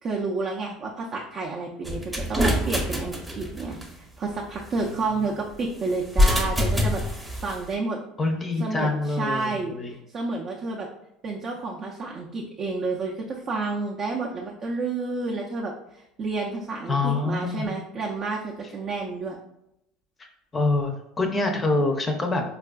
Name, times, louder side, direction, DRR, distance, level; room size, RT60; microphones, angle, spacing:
voice 1, 0.0-8.0 8.6-9.8 10.1-10.9 11.2-19.4, right 3 dB, 45° right, -1 dB, 0.5 m, -30 dB
sound 1, 1.8-3.9 6.0-7.6, left 1 dB, 10° right, 0.7 m, -24 dB
voice 2, 8.2-9.9 16.9-17.8 20.2-20.3 20.5-22.4, left 3 dB, 25° left, 4 dB, 0.5 m, -25 dB
4.4 x 2.4 x 2.3 m, 0.82 s
supercardioid pair, 95°, 0 cm